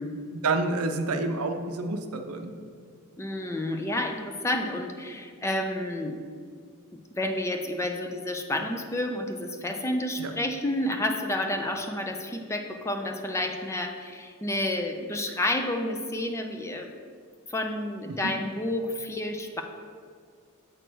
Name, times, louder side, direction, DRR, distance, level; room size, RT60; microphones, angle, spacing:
voice 1, 0.3-2.5 10.2-10.3 18.2-18.3, right 3 dB, 75° right, 6 dB, 0.6 m, -28 dB
voice 2, 3.2-6.2 7.2-16.9 17.5-19.6, left 1 dB, 15° left, 4 dB, 0.4 m, -30 dB
7.8 x 3.1 x 6.1 m, 2.1 s
head